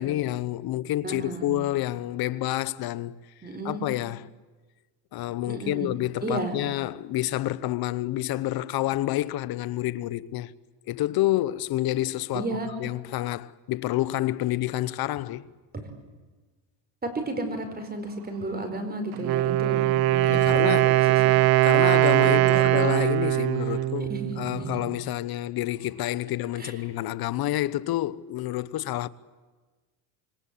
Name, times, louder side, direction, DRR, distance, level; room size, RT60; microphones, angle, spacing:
voice 1, 0.0-3.2 3.6-4.3 5.1-10.5 10.9-12.5 12.8-15.5 20.2-21.0 21.6-29.1, left 15 dB, 60° left, 0.9 m, -28 dB
voice 2, 1.0-1.5 3.4-3.8 5.5-5.9 6.2-6.6 12.3-12.7 17.3-20.9 21.2-21.3 22.2-22.8 24.1-24.8 26.6-26.7, right 2 dB, 20° right, 4.8 m, -33 dB
Wind instrument woodwind instrument, 19.1-24.9, right 16 dB, 55° right, 0.8 m, -21 dB
26.5 x 23.5 x 8.6 m
cardioid pair, 125°, 43 cm